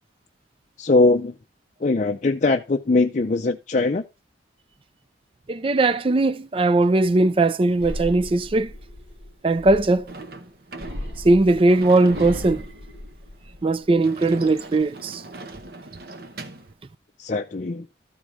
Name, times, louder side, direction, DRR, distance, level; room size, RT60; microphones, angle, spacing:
voice 1, 0.8-1.3 1.8-4.0 17.2-17.9, left 3 dB, 40° left, 0.5 m, -21 dB
voice 2, 5.5-8.7 9.4-10.1 11.2-12.6 13.6-15.2, right 2 dB, 30° right, 0.4 m, -19 dB
sound 1, 7.8-10.2 10.8-13.8 14.3-14.8, left 1 dB, 70° right, 2.7 m, -36 dB
Sliding door / Slam, 10.1-16.7, right 2 dB, 55° right, 1.0 m, -40 dB
13.5 x 4.8 x 3.9 m
head